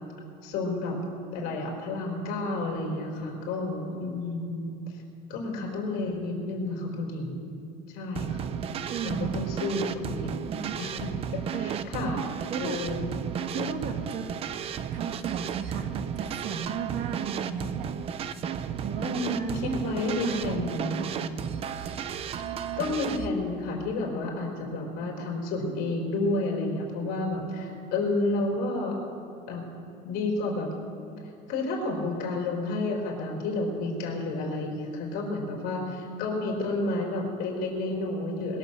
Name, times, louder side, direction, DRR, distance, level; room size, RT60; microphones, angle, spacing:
voice 1, 0.4-1.0 1.3-4.7 5.3-7.5 7.9-8.5 9.0-10.4 10.8-11.1 11.5-12.2 12.6-13.1 13.5-13.7 18.9-21.1 22.8-29.1 29.4-29.6 30.0-30.7 31.5-38.6, left 2 dB, 65° left, 0 dB, 4.2 m, -30 dB
sound 1, 8.2-23.3, right 8 dB, 35° right, 0.6 m, -33 dB
voice 2, 8.9-9.4 10.5-10.8 11.5-11.9 12.5-12.8 13.1-13.2 13.5-14.3 14.9-17.9 18.8-21.4 22.3-22.4, right 6 dB, 50° right, 6 dB, 1.3 m, -35 dB
21.5 x 7.4 x 6.7 m, 2.6 s
cardioid pair, 155°, 17 cm